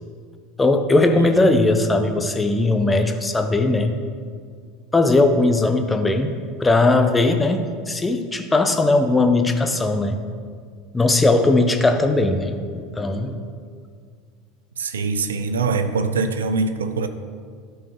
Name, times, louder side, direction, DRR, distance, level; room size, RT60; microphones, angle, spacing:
voice 1, 0.6-3.9 4.9-10.2 10.9-13.4, left 2 dB, 15° left, 0.9 m, -19 dB
voice 2, 14.8-17.1, right 4 dB, 90° right, 0.5 m, -23 dB
13.0 x 4.8 x 5.3 m
hypercardioid pair, 85°, 0 cm